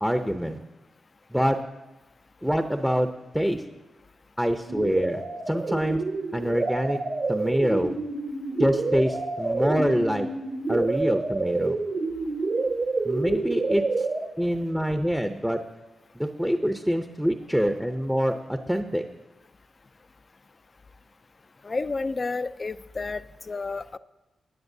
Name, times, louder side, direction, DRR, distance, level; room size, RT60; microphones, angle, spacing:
voice 1, 0.0-0.6 1.3-1.6 2.4-3.1 3.3-3.6 4.4-6.0 6.3-7.0 7.3-7.9 8.6-10.3 10.7-11.8 13.0-14.1 14.4-15.6 16.1-19.0, equal, 5° right, 6 dB, 0.7 m, -25 dB
sound 1, 4.7-14.2, right 3 dB, 55° right, 1.4 m, -28 dB
voice 2, 21.6-24.0, left 3 dB, 40° left, 14 dB, 0.4 m, -31 dB
19.0 x 9.7 x 2.7 m, 1.0 s
cardioid pair, 70°, 0 cm